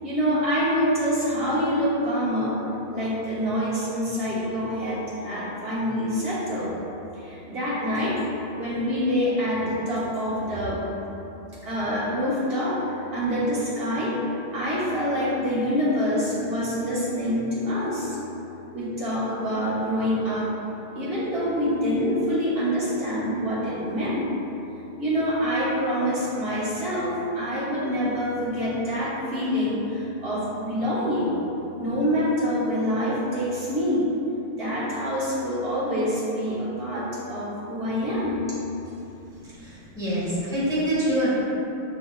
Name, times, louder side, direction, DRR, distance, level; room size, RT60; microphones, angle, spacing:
voice 1, 0.0-2.6 2.9-6.7 7.1-8.2 8.5-10.8 11.6-14.2 14.5-18.2 18.7-20.5 20.9-24.3 25.0-31.4 31.8-34.1 34.5-38.5 39.3-39.4 39.9-40.0, equal, 65° right, -10 dB, 1.4 m, -26 dB
voice 2, 39.6-41.3, equal, 5° right, -11 dB, 1.4 m, -25 dB
7.5 x 2.9 x 2.2 m, 3.0 s
omnidirectional pair, 1.1 m